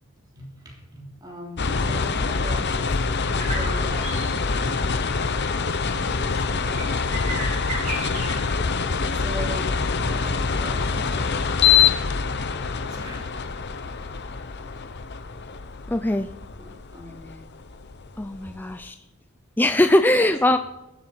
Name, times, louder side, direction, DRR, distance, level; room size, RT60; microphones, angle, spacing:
voice 1, 0.0-4.8 5.9-7.1 9.1-11.5 12.9-13.3 16.6-17.5 18.0-18.1 20.1-20.6, equal, 20° right, -1 dB, 3.1 m, -40 dB
sound 1, 1.6-18.7, left 5 dB, 50° left, 0.8 m, -25 dB
sound 2, 3.4-9.4, right 2 dB, 35° right, 3.3 m, -35 dB
voice 2, 15.9-16.3 18.2-19.0 19.6-20.6, left 1 dB, 10° left, 8 dB, 0.4 m, -20 dB
21.5 x 7.5 x 4.4 m, 1.0 s
head